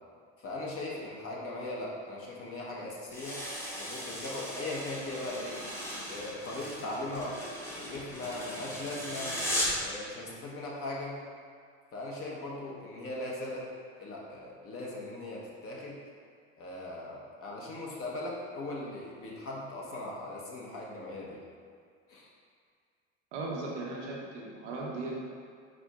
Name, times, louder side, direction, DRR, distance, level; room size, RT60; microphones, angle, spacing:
voice 1, 0.4-3.4 3.8-5.6 6.1-7.4 7.8-9.4 9.8-11.2 11.9-13.7 14.0-16.0 16.6-21.4 22.1-22.3, left 2 dB, 40° left, -4 dB, 1.1 m, -39 dB
sound 1, 3.1-9.9, equal, 5° left, 1.0 m, -37 dB
voice 2, 23.3-25.2, right 2 dB, 90° right, -3 dB, 1.0 m, -37 dB
4.9 x 4.4 x 2.4 m, 2.1 s
supercardioid pair, 95°, 35 cm